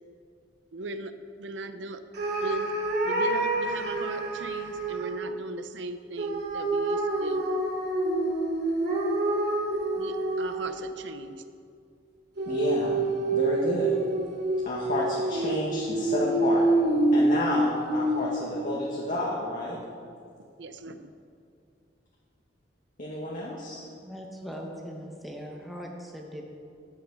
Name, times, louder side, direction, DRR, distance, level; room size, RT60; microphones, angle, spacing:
voice 1, 0.7-1.1 1.4-2.0 2.4-2.7 3.0-7.4 9.9-11.3 20.6-21.1, right 2 dB, 75° right, 10 dB, 0.7 m, -38 dB
sound 1, 2.1-5.1 6.2-10.9 12.4-18.5, right 2 dB, 60° right, 2.4 m, -27 dB
voice 2, 12.4-14.0 14.6-16.6 17.1-19.8 23.0-23.8, left 1 dB, 45° left, -4 dB, 1.6 m, -30 dB
voice 3, 24.0-26.4, equal, ahead, -1 dB, 1.1 m, -40 dB
12.0 x 9.6 x 4.8 m, 2.4 s
head